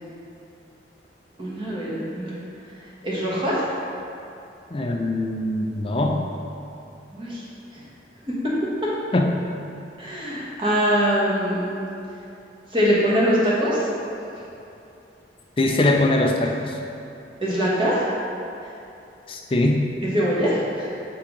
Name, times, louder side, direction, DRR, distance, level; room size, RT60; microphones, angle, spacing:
voice 1, 1.4-2.4 3.0-3.7 7.1-7.4 10.0-11.9 12.7-13.8 17.4-18.0 20.0-20.9, equal, 25° right, -7 dB, 1.2 m, -23 dB
voice 2, 4.7-6.3 9.1-9.3 15.6-16.8 19.3-19.9, left 1 dB, 30° left, 2 dB, 0.4 m, -22 dB
6.0 x 4.7 x 3.8 m, 2.8 s
head